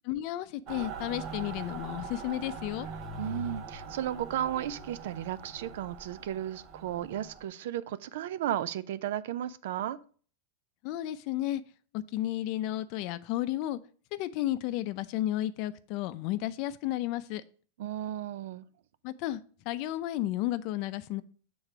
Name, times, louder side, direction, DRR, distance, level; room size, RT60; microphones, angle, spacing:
voice 1, 0.0-2.9 10.8-11.6 11.9-13.8 14.1-17.4 19.0-19.4 19.7-21.2, left 14 dB, 55° left, 0.5 m, -32 dB
Mechanical fan, 0.7-7.5, right 4 dB, 45° right, 1.1 m, -42 dB
voice 2, 3.2-10.0 17.8-18.6, right 11 dB, 70° right, 0.5 m, -34 dB
6.5 x 3.9 x 5.9 m
hypercardioid pair, 115°, 0 cm